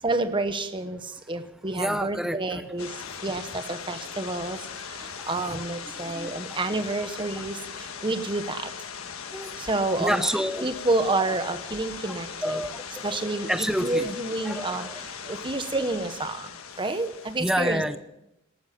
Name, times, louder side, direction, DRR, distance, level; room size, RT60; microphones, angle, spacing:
voice 1, 0.0-2.9 3.2-8.7 9.6-10.2 10.6-12.6 13.0-16.5 16.8-17.8, right 2 dB, 25° right, 9 dB, 1.1 m, -29 dB
voice 2, 1.8-2.6 5.2-5.3 6.1-6.6 9.3-9.5 10.0-10.7 11.3-11.4 12.1-14.1 14.4-14.9 17.4-18.0, equal, ahead, 10 dB, 0.8 m, -29 dB
sound 1, 2.8-17.4, left 6 dB, 85° left, 1.4 m, -39 dB
19.0 x 13.0 x 5.8 m, 0.88 s
head